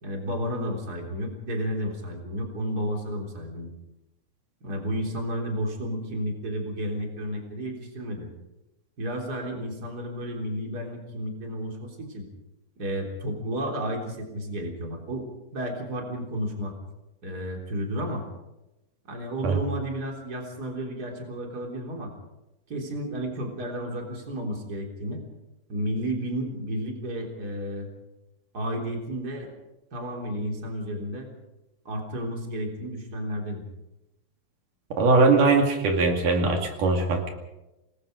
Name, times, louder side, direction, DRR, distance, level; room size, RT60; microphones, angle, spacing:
voice 1, 0.0-3.7 4.6-8.3 9.0-12.3 12.8-16.7 17.2-18.2 19.1-22.1 22.7-25.2 25.7-27.9 28.5-29.5 29.9-31.3 31.9-33.6, equal, 30° right, 2 dB, 3.9 m, -32 dB
voice 2, 35.0-37.3, right 3 dB, 80° right, 3 dB, 3.9 m, -21 dB
27.5 x 20.0 x 5.2 m, 0.97 s
omnidirectional pair, 3.7 m